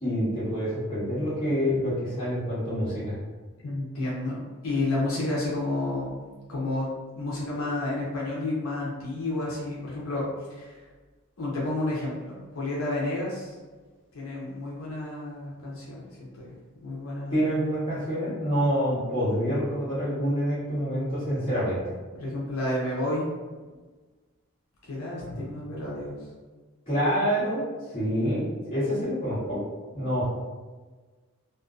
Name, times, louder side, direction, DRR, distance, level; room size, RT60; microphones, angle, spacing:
voice 1, 0.0-3.1 17.3-21.8 25.2-25.6 26.9-29.6 29.9-30.2, equal, 25° left, -12 dB, 1.2 m, -27 dB
voice 2, 3.6-6.1 6.5-6.9 7.1-10.8 11.4-13.5 14.1-16.5 16.8-17.5 22.2-23.3 24.9-26.2, left 2 dB, 80° left, -5 dB, 0.6 m, -31 dB
2.4 x 2.1 x 2.4 m, 1.3 s
head